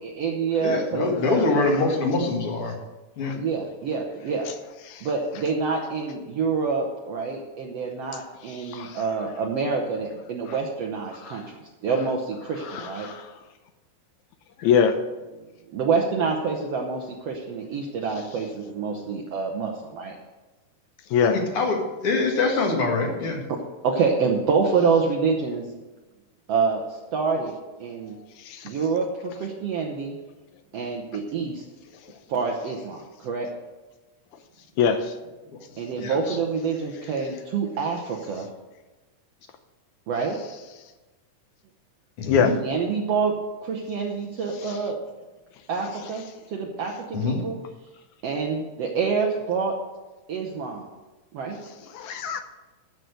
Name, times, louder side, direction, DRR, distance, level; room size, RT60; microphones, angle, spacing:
voice 1, 0.0-1.9 3.3-4.5 5.0-13.1 15.7-20.1 23.8-25.7 26.5-28.2 28.6-30.2 30.7-31.6 32.3-33.5 35.8-38.5 40.1-40.4 42.6-43.3 43.6-45.0 45.7-47.6 48.2-49.7 50.3-50.9 51.3-51.6, right 5 dB, 65° right, 0 dB, 1.8 m, -27 dB
voice 2, 0.6-2.8 3.2-3.4 21.2-23.4 36.0-36.4 42.2-42.6 47.1-47.4, left 3 dB, 50° left, 1 dB, 2.5 m, -24 dB
voice 3, 8.6-9.0 11.2-11.4 12.6-13.3 14.6-15.0 21.1-21.4 28.5-28.7 34.8-35.1 42.2-42.5 51.9-52.4, left 7 dB, 75° left, 8 dB, 2.1 m, -23 dB
14.0 x 6.1 x 6.6 m, 1.2 s
omnidirectional pair, 3.6 m